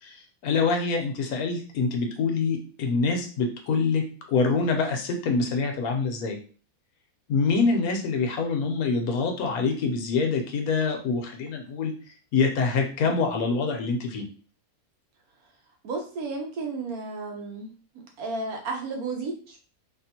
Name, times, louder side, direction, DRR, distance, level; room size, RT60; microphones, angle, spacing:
voice 1, 0.0-6.4 7.3-11.9 12.3-14.3, left 4 dB, 85° left, 3 dB, 1.2 m, -25 dB
voice 2, 15.8-17.7 18.2-19.6, right 3 dB, 85° right, 2 dB, 1.3 m, -33 dB
3.5 x 2.5 x 2.8 m, 0.40 s
omnidirectional pair, 1.5 m